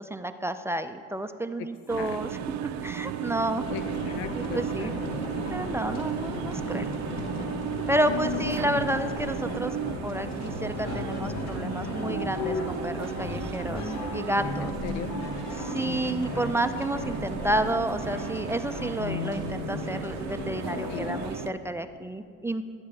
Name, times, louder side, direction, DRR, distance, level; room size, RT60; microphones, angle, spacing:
voice 1, 0.0-2.4 2.8-3.6 4.3-4.9 5.5-6.9 7.9-9.8 10.0-14.7 15.5-22.6, right 1 dB, 10° right, 8 dB, 0.3 m, -30 dB
sound 1, 1.9-21.5, right 10 dB, 60° right, 0.6 m, -35 dB
sound 2, 3.6-21.3, left 2 dB, 55° left, 1.4 m, -35 dB
voice 2, 3.7-5.2 8.1-8.6 14.6-15.2 20.9-21.2, left 9 dB, 90° left, 12 dB, 0.6 m, -37 dB
12.5 x 8.1 x 3.2 m, 2.4 s
supercardioid pair, 80°, 31 cm